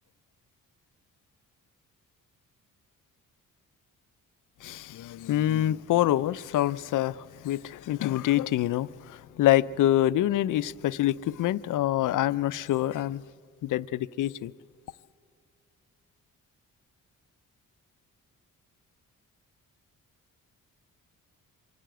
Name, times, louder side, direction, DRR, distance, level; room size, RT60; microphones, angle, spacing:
voice 1, 4.6-13.2 13.6-14.5, left 13 dB, 65° left, 0.5 m, -26 dB
24.5 x 12.5 x 9.1 m
wide cardioid pair, 160°, 34 cm